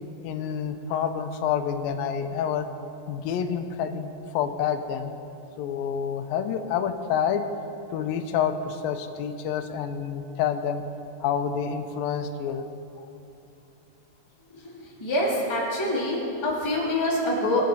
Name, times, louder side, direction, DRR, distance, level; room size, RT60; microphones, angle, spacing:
voice 1, 0.2-2.7 3.1-5.1 5.6-7.4 7.9-10.8 11.2-12.6 13.0-13.1, left 8 dB, 85° left, 7 dB, 2.5 m, -28 dB
voice 2, 15.0-17.6, left 1 dB, 10° left, -5 dB, 1.4 m, -25 dB
20.5 x 8.6 x 4.1 m, 2.8 s
omnidirectional pair, 4.0 m